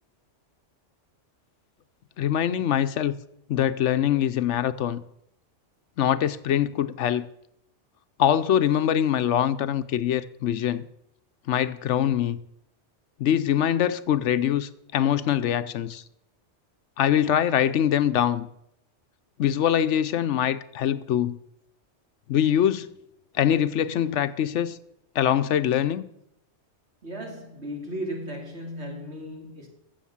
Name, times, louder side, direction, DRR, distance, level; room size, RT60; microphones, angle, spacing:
voice 1, 2.2-3.2 3.5-5.0 6.0-7.2 8.2-10.8 11.5-12.4 13.2-16.0 17.0-18.5 19.4-21.4 22.3-22.9 23.3-24.8 25.1-26.0, left 10 dB, 75° left, 1.0 m, -23 dB
voice 2, 27.0-29.7, equal, 60° right, 2.9 m, -35 dB
14.5 x 7.3 x 7.1 m
omnidirectional pair, 1.3 m